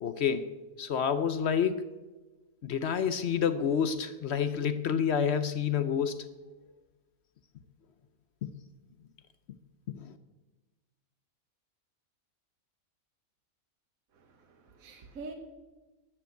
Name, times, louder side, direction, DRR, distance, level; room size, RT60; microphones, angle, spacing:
voice 1, 0.0-1.9 2.6-6.2 8.4-8.5 9.9-10.1, left 7 dB, 60° left, 12 dB, 0.8 m, -29 dB
voice 2, 14.1-15.3, right 3 dB, 70° right, 3 dB, 1.6 m, -46 dB
12.5 x 7.7 x 7.9 m, 1.2 s
omnidirectional pair, 1.5 m